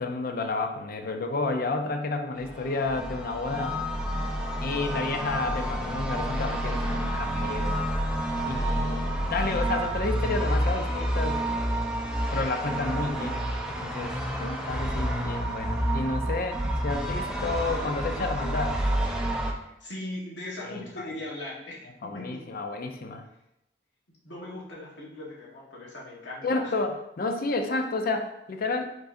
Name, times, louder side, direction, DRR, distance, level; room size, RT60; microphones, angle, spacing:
voice 1, 0.0-3.8 4.6-7.7 8.5-11.4 12.3-13.4 13.7-14.1 14.4-18.8 20.6-21.1 22.0-23.2 26.4-28.9, left 3 dB, 55° left, 6 dB, 0.5 m, -31 dB
sound 1, 2.4-19.5, right 1 dB, 5° right, 0.5 m, -29 dB
voice 2, 19.8-22.5 24.2-26.7, left 1 dB, 85° left, -3 dB, 1.2 m, -39 dB
4.7 x 3.9 x 2.5 m, 0.83 s
head